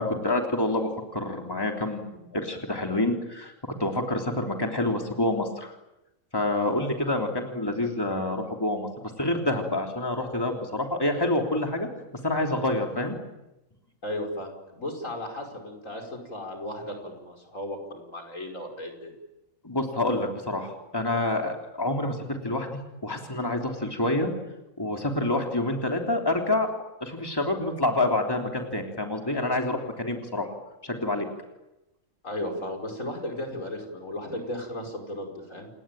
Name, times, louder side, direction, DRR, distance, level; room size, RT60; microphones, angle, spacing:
voice 1, 0.0-3.5 3.8-5.7 6.3-11.9 12.2-13.1 19.6-24.3 24.8-26.7 27.0-30.5 30.8-31.3, left 2 dB, 15° left, 2 dB, 3.4 m, -27 dB
voice 2, 14.0-19.1 32.2-35.7, left 1 dB, 85° left, 3 dB, 5.7 m, -35 dB
29.0 x 19.5 x 9.0 m, 0.94 s
omnidirectional pair, 1.3 m